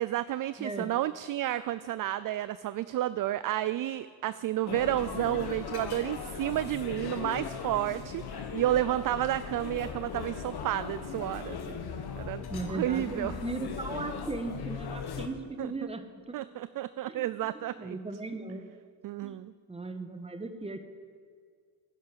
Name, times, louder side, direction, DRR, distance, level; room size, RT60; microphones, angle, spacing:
voice 1, 0.0-11.8 12.2-13.3 15.6-15.7 16.3-18.0 19.0-19.5, right 13 dB, 45° right, 15 dB, 0.5 m, -31 dB
voice 2, 0.6-0.9 12.5-16.3 17.1-17.2 17.5-18.8 19.2-19.4 19.7-20.8, right 3 dB, 10° right, 8 dB, 1.5 m, -37 dB
sound 1, 4.7-15.3, left 6 dB, 50° left, 1.7 m, -38 dB
11.0 x 10.5 x 9.9 m, 2.1 s
supercardioid pair, 85°, 47 cm